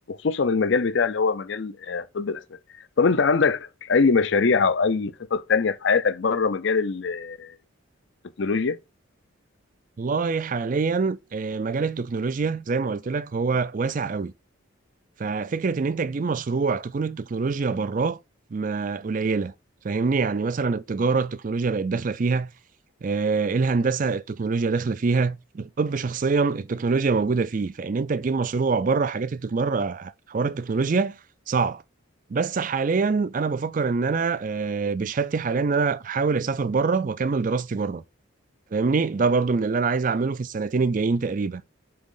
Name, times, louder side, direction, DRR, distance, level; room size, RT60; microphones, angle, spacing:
voice 1, 0.1-2.4 3.0-7.6 8.4-8.8, left 4 dB, 55° left, 0.5 m, -23 dB
voice 2, 10.0-14.3 15.2-18.2 18.5-19.5 19.8-22.5 23.0-31.2 31.5-31.8 32.3-38.0 38.7-41.6, right 4 dB, 40° right, 0.4 m, -25 dB
7.7 x 3.5 x 3.8 m
head